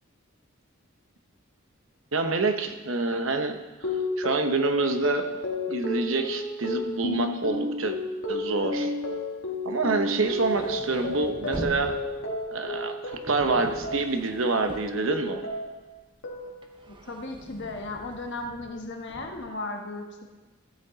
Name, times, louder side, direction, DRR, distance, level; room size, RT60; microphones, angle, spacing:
voice 1, 2.1-3.9 4.2-5.2 5.7-8.0 8.3-8.9 9.6-11.9 12.5-15.5, right 3 dB, 70° right, 6 dB, 0.9 m, -27 dB
sound 1, 3.8-14.3 14.6-15.9 16.2-16.8, left 2 dB, 75° left, 1.7 m, -32 dB
sound 2, 9.7-15.8 16.2-19.5, right 1 dB, 25° right, 0.8 m, -43 dB
voice 2, 16.9-20.0, left 2 dB, 55° left, 3 dB, 1.3 m, -35 dB
14.0 x 8.1 x 4.0 m, 1.2 s
head